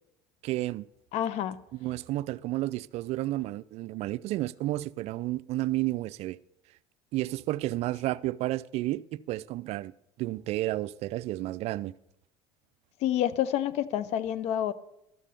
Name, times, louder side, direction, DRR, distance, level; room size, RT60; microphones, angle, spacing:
voice 1, 0.4-0.8 1.8-6.4 7.1-9.9 10.2-11.9, right 16 dB, 60° right, 0.4 m, -31 dB
voice 2, 1.1-1.6 13.0-14.7, left 11 dB, 65° left, 0.7 m, -28 dB
12.5 x 5.5 x 6.7 m
supercardioid pair, 90°, 12 cm